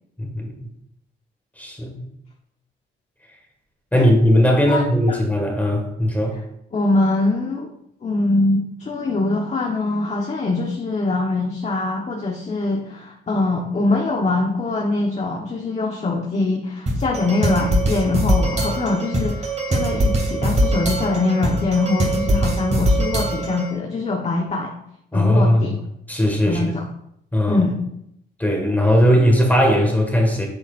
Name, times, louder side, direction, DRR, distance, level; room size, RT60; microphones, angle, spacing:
voice 1, 0.2-0.7 1.6-2.0 3.9-6.4 25.1-25.8 26.1-26.6 27.3-27.6 28.4-30.5, equal, 10° left, 1 dB, 1.8 m, -18 dB
voice 2, 4.7-5.2 6.7-7.7 8.0-24.7 25.1-25.8 26.4-26.8 27.5-27.8, left 2 dB, 35° left, -1 dB, 1.2 m, -23 dB
sound 1, 16.9-23.7, right 1 dB, 35° right, 2.5 m, -22 dB
8.8 x 7.2 x 2.6 m, 0.77 s
cardioid pair, 90°, 20 cm